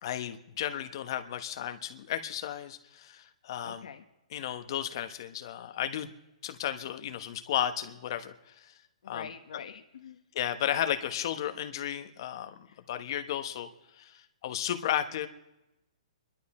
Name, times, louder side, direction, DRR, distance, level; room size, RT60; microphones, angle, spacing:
voice 1, 0.0-3.9 4.3-6.1 6.4-8.7 9.1-9.3 10.3-15.3, left 10 dB, 40° left, 9 dB, 1.1 m, -34 dB
voice 2, 3.6-4.0 9.0-10.2 12.7-12.8 14.9-15.3, left 7 dB, 60° left, 8 dB, 1.1 m, -46 dB
25.5 x 11.5 x 4.3 m, 0.94 s
hypercardioid pair, 170°, 4 cm